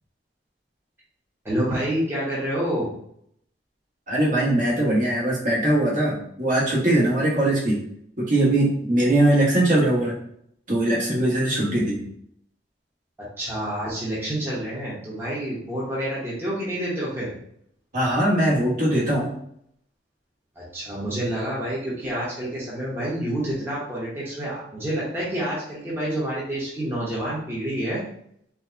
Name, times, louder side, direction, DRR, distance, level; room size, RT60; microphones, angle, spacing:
voice 1, 1.4-2.9 13.2-17.3 20.6-28.0, right 1 dB, 15° right, -8 dB, 0.9 m, -28 dB
voice 2, 4.1-7.8 8.2-10.1 10.7-12.1 17.9-19.3, right 1 dB, 50° right, -5 dB, 1.4 m, -21 dB
4.5 x 2.2 x 2.7 m, 0.69 s
head